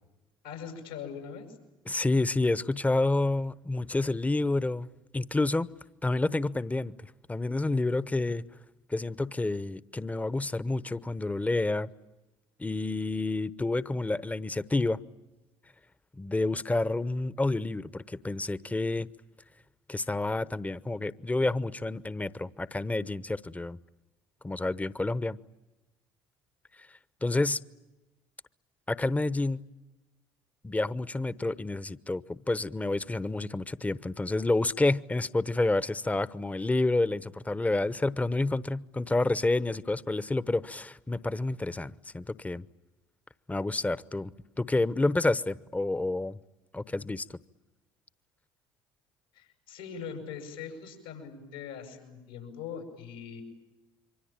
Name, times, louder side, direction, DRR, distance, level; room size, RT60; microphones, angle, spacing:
voice 1, 0.4-1.6 49.3-53.4, left 6 dB, 90° left, 3 dB, 7.4 m, -41 dB
voice 2, 1.9-4.9 5.1-5.7 6.0-8.4 8.9-11.9 12.6-15.0 16.1-19.1 19.9-23.8 24.4-25.4 27.2-27.6 28.9-29.6 30.6-42.7 43.5-44.3 44.6-46.4 46.7-47.3, left 2 dB, 15° left, 16 dB, 1.0 m, -29 dB
27.0 x 24.0 x 8.9 m, 1.1 s
hypercardioid pair, 65°, 11 cm